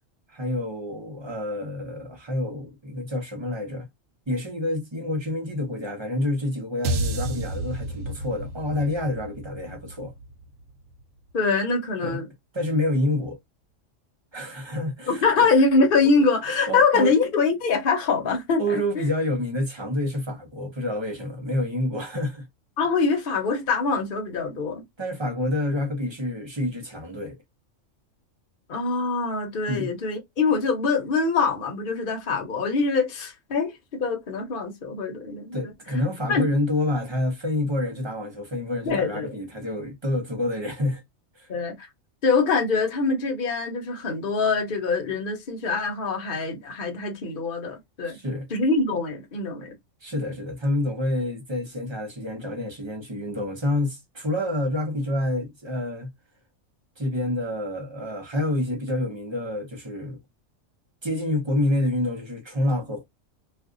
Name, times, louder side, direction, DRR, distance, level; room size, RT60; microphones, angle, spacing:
voice 1, 0.3-3.9 4.3-10.1 12.0-12.2 12.5-13.4 14.3-15.5 16.7-17.1 18.6-22.4 25.0-27.4 29.7-29.9 35.5-41.0 41.3-41.5 48.1-48.5 50.0-56.1 57.0-60.2 61.0-63.0, left 1 dB, 25° right, 0.7 m, -28 dB
sound 1, 6.8-11.2, right 1 dB, 70° right, 0.9 m, -31 dB
voice 2, 11.3-12.3 15.1-19.1 22.8-24.8 28.7-35.7 36.3-36.4 38.8-39.4 41.5-41.9 42.2-48.2 48.5-49.7, left 4 dB, 45° left, 1.0 m, -24 dB
2.5 x 2.4 x 3.6 m
omnidirectional pair, 1.3 m